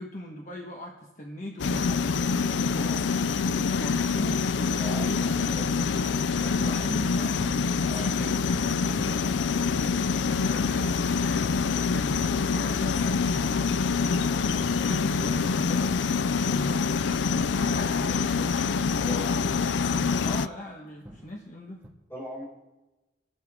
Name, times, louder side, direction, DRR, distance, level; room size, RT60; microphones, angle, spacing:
voice 1, 0.0-2.9 3.4-5.9 6.3-7.5 7.7-11.6 11.9-16.9 17.3-18.5 20.2-21.8, left 1 dB, 45° left, -1 dB, 1.5 m, -40 dB
sound 1, 1.6-20.5, left 5 dB, 85° left, 0.4 m, -26 dB
voice 2, 2.7-3.1 4.7-5.9 7.8-8.1 19.0-19.4 22.1-22.4, equal, 15° left, -6 dB, 5.7 m, -40 dB
sound 2, 9.7-10.2 10.6-12.7 13.0-13.5 13.8-16.7 17.0-17.4 17.8-19.0 19.4-19.9 20.2-20.7 21.1-21.5 21.7-21.9, equal, 10° right, 1.8 m, -45 dB
24.5 x 12.0 x 3.7 m, 1.0 s
head